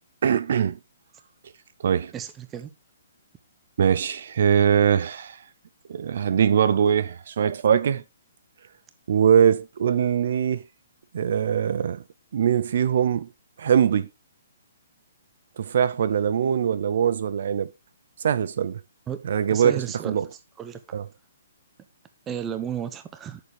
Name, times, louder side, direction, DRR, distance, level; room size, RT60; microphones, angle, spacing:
voice 1, 0.2-0.8 1.8-2.1 3.8-5.4 5.9-8.0 9.1-10.6 11.1-12.0 12.3-13.3 13.6-14.1 15.6-17.7 18.2-18.8 19.2-20.3 20.9-21.1, right 8 dB, 55° right, 0.6 m, -22 dB
voice 2, 2.1-2.7 19.1-19.2 19.5-20.2 20.6-20.8 22.3-23.4, right 8 dB, 10° right, 0.7 m, -33 dB
9.3 x 6.7 x 3.4 m
hypercardioid pair, 170°, 0 cm